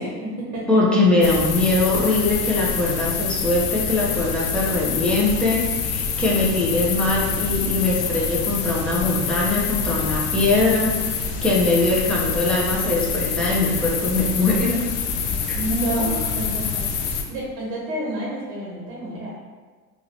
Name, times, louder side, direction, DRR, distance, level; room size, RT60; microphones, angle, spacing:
voice 1, 0.0-1.0 7.0-7.5 15.5-19.3, right 1 dB, 80° right, -5 dB, 1.0 m, -29 dB
voice 2, 0.7-10.9 11.4-14.8 15.5-15.6, left 2 dB, ahead, -5 dB, 0.8 m, -21 dB
sound 1, 1.2-17.2, left 6 dB, 70° left, 0.6 m, -26 dB
2.9 x 2.7 x 2.8 m, 1.4 s
hypercardioid pair, 80°, 44 cm